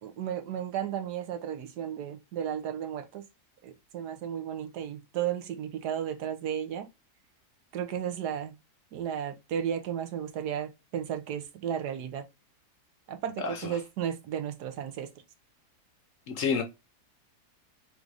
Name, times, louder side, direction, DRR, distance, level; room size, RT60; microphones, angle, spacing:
voice 1, 0.0-3.2 3.6-6.9 7.7-8.6 8.9-12.2 13.1-15.1, right 9 dB, 85° right, 1.3 m, -34 dB
voice 2, 13.4-13.8 16.3-16.6, left 5 dB, 65° left, 0.9 m, -29 dB
3.9 x 2.6 x 4.6 m
omnidirectional pair, 1.7 m